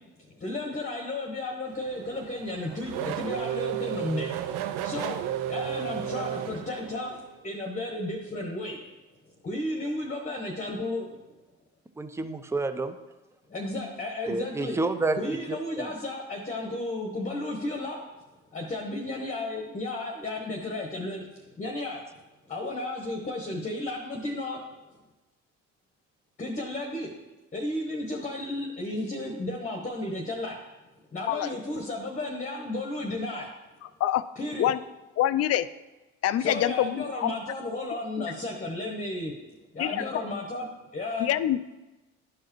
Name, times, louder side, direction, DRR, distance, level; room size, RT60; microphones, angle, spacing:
voice 1, 0.2-4.3 4.6-8.8 9.4-11.4 13.5-14.8 15.1-18.0 18.5-24.6 26.4-27.1 27.5-30.6 31.1-33.5 34.4-34.7 36.4-39.3 39.7-41.3, left 2 dB, 25° left, 1 dB, 1.0 m, -33 dB
Race car auto racing / Accelerating revving vroom, 1.7-7.3, right 10 dB, 75° right, 0.5 m, -33 dB
voice 2, 12.0-12.9 14.3-15.9, right 2 dB, 10° right, 9 dB, 0.5 m, -29 dB
voice 3, 35.2-35.7 36.2-37.3 38.2-38.3 39.8-40.0 41.2-41.8, left 12 dB, 45° left, 15 dB, 0.4 m, -25 dB
11.0 x 4.7 x 3.1 m, 1.1 s
hypercardioid pair, 60°, 34 cm